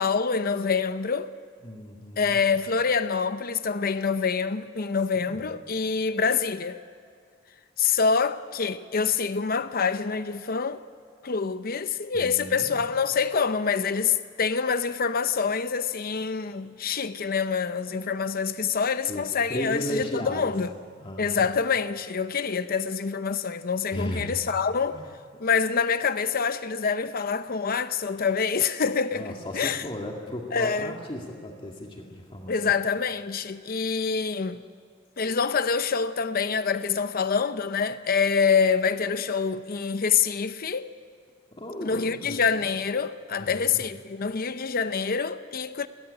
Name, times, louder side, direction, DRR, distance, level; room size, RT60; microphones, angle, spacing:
voice 1, 0.0-1.3 2.2-6.8 7.8-10.8 11.2-20.7 21.2-25.0 25.4-29.8 30.5-30.9 32.5-34.6 35.2-40.9 41.8-45.9, left 5 dB, 50° left, 0.7 m, -26 dB
voice 2, 1.6-2.4 5.2-5.5 12.1-12.9 19.1-20.5 21.0-21.4 23.9-24.3 24.9-25.1 29.1-32.7 41.5-42.7 43.4-43.8, equal, 30° left, 2.1 m, -35 dB
30.0 x 13.5 x 9.8 m
head